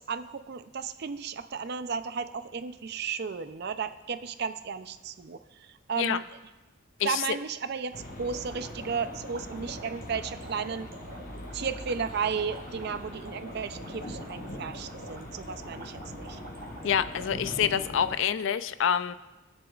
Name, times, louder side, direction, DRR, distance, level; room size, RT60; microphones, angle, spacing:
voice 1, 0.0-6.2 7.0-10.9 11.3-16.4, right 6 dB, 50° right, 11 dB, 0.5 m, -34 dB
sound 1, 7.9-18.2, left 1 dB, 40° left, 1.0 m, -42 dB
sound 2, 8.2-18.2, right 2 dB, 75° right, 1.7 m, -47 dB
voice 2, 16.8-19.1, left 8 dB, 60° left, 13 dB, 0.4 m, -27 dB
20.0 x 7.1 x 2.4 m, 1.1 s
head